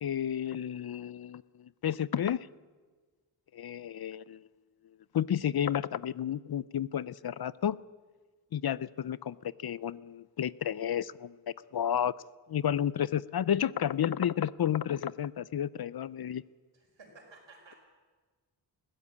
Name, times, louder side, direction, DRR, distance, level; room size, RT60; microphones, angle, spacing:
voice 1, 0.0-2.4 3.5-4.4 5.1-7.8 8.5-11.4 11.7-12.1 12.5-16.4, left 9 dB, 55° left, 0.5 m, -31 dB
voice 2, 16.7-17.8, right 3 dB, 80° right, 5.0 m, -54 dB
21.0 x 15.5 x 8.6 m
wide cardioid pair, 115°, 44 cm